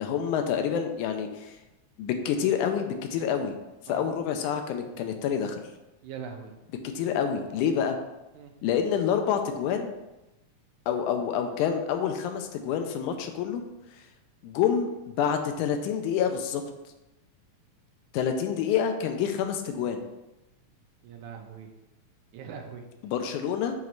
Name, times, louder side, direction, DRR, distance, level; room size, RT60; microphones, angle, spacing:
voice 1, 0.0-1.6 2.0-3.5 3.9-5.6 6.8-8.0 8.6-10.0 10.9-13.6 14.4-16.6 18.1-20.0 23.0-23.7, left 8 dB, 80° left, 6 dB, 2.0 m, -27 dB
voice 2, 6.0-6.6 8.3-8.5 21.0-21.7 22.3-22.9, right 6 dB, 80° right, 3 dB, 2.0 m, -41 dB
7.2 x 3.1 x 4.5 m, 0.97 s
omnidirectional pair, 3.6 m